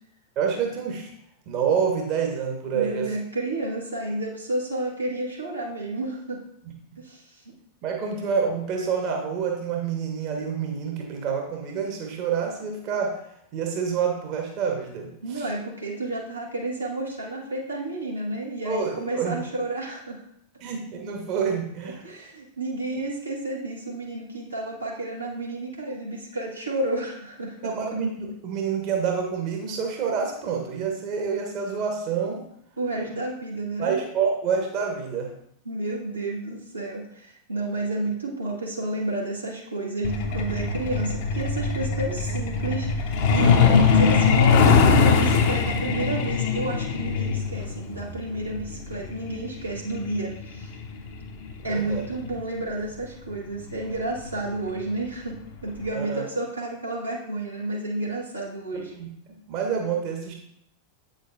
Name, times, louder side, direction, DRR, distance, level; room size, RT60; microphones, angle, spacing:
voice 1, 0.4-1.1 1.5-3.1 7.8-13.2 13.5-15.4 18.6-19.4 20.6-22.0 27.6-32.4 33.8-35.3 43.4-43.8 51.6-52.1 55.9-56.3 58.7-59.1 59.5-60.3, right 6 dB, 40° right, 2 dB, 1.2 m, -27 dB
voice 2, 2.7-6.4 7.0-7.5 15.2-20.2 21.8-27.7 32.8-34.0 35.6-50.7 51.6-58.9, right 2 dB, 85° right, -5 dB, 1.6 m, -31 dB
Truck, 40.0-52.3 53.6-53.7 54.1-54.3 54.7-55.0 55.3-55.4 55.9-56.0, left 5 dB, 50° left, 0.9 m, -22 dB
8.1 x 6.3 x 2.6 m, 0.73 s
figure-of-eight pair, 90°, 0 cm